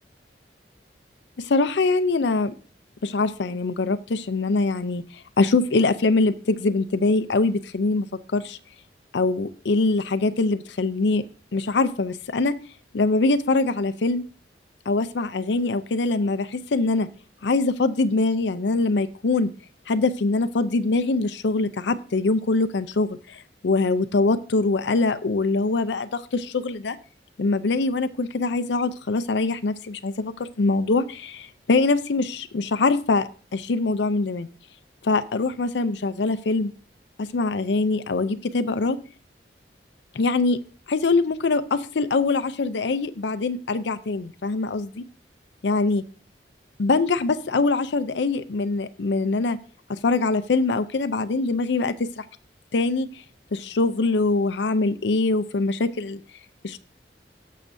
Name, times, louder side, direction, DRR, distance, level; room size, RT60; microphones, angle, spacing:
voice 1, 1.4-2.6 3.0-5.0 5.4-8.6 9.1-11.2 11.5-12.5 12.9-14.2 14.9-17.1 17.4-19.5 19.9-27.0 27.4-34.5 35.0-36.7 37.2-39.0 40.1-40.6 40.9-45.0 45.6-46.0 46.8-49.6 49.9-52.2 52.7-53.1 53.5-56.2 56.6-56.8, left 3 dB, 80° left, 12 dB, 0.5 m, -23 dB
18.0 x 6.6 x 2.6 m, 0.39 s
head